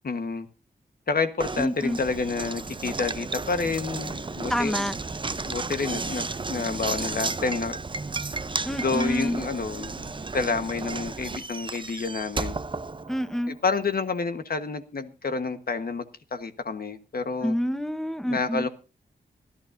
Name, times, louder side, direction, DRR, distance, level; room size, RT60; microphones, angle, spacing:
voice 1, 0.0-0.5 1.1-4.8 5.5-7.8 8.7-12.5 13.5-16.0 16.3-17.5 18.3-18.7, left 4 dB, 55° left, 1.3 m, -29 dB
Knock, 1.4-13.5, right 3 dB, 25° right, 0.7 m, -33 dB
voice 2, 1.6-2.0 4.5-4.9 8.6-9.4 13.1-13.5 17.4-18.7, equal, ahead, 1.1 m, -27 dB
25.5 x 11.5 x 2.6 m
cardioid pair, 75°, 19 cm